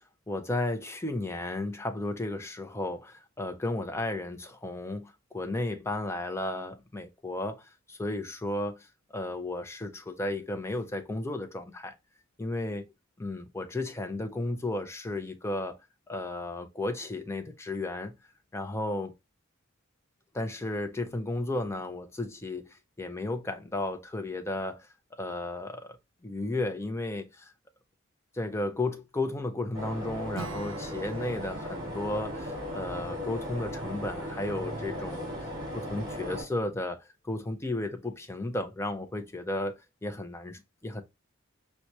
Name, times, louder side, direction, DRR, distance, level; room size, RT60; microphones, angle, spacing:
voice 1, 0.3-8.8 9.1-11.9 12.4-12.9 13.2-15.8 16.1-18.1 18.5-19.1 20.3-24.9 25.2-26.0 26.2-27.5 28.3-35.3 35.7-41.0, left 2 dB, 15° left, 0.4 m, -34 dB
sound 1, 29.7-36.4, equal, 20° right, 2.1 m, -37 dB
Acoustic guitar / Strum, 30.3-34.6, right 4 dB, 65° right, 0.6 m, -47 dB
4.5 x 2.1 x 2.7 m
head